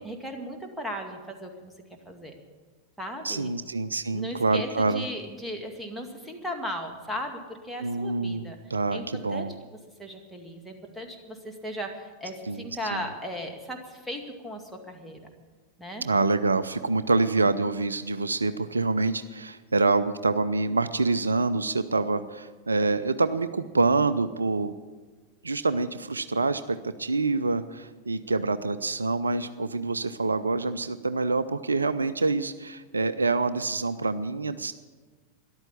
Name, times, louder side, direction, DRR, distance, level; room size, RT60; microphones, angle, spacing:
voice 1, 0.0-1.7 2.1-2.3 3.0-3.5 4.1-8.6 8.9-9.5 10.0-15.2 15.8-16.0, equal, ahead, 1 dB, 2.1 m, -37 dB
voice 2, 3.2-5.0 7.8-9.5 12.5-13.0 16.0-24.7 25.4-34.7, right 3 dB, 75° right, 13 dB, 0.5 m, -26 dB
13.5 x 11.5 x 8.5 m, 1.4 s
figure-of-eight pair, 90°, 0 cm